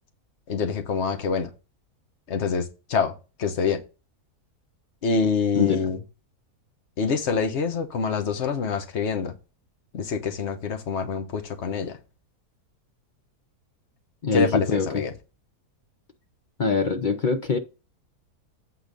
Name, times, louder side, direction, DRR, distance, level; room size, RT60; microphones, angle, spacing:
voice 1, 0.5-1.5 2.3-3.1 3.4-3.8 5.0-6.0 7.0-9.4 9.9-12.0 14.3-15.1, left 5 dB, 50° left, 1.3 m, -26 dB
voice 2, 14.2-14.9 16.6-17.6, left 5 dB, 65° left, 0.4 m, -23 dB
8.4 x 3.9 x 5.1 m
omnidirectional pair, 1.7 m